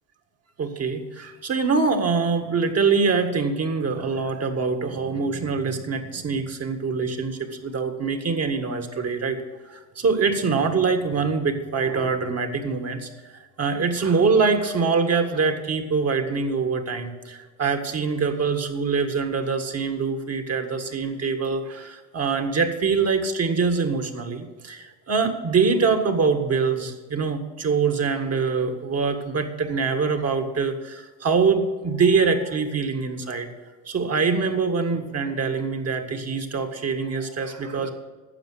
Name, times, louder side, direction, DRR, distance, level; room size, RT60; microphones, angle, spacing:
voice 1, 0.6-9.4 9.7-33.5 33.9-37.9, right 5 dB, 40° right, 5 dB, 1.8 m, -24 dB
12.0 x 7.5 x 7.7 m, 1.3 s
supercardioid pair, 80°, 39 cm